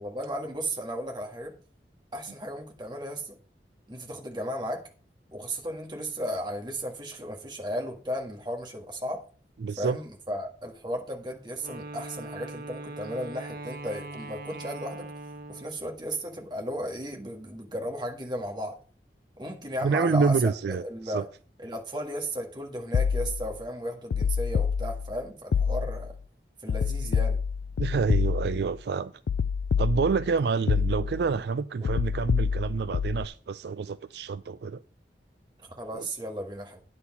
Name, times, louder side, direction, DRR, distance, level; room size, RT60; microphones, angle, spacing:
voice 1, 0.0-1.5 2.1-3.4 3.9-4.8 5.3-9.2 9.8-15.1 15.5-18.7 19.4-21.2 21.6-26.1 26.6-27.4 31.8-32.0 35.6-36.8, equal, 25° right, 1.7 m, -35 dB
voice 2, 9.6-10.0 19.8-21.2 27.8-29.1 29.8-34.8 35.9-36.1, right 5 dB, 70° right, 0.4 m, -27 dB
Wind instrument woodwind instrument, 11.6-15.9, right 2 dB, 50° right, 0.9 m, -41 dB
sound 1, 22.9-23.6 24.1-25.2 25.5-26.1 26.7-28.7 29.3-30.3 30.7-31.3 31.8-33.3, left 6 dB, 75° left, 0.3 m, -27 dB
9.7 x 4.4 x 7.1 m
head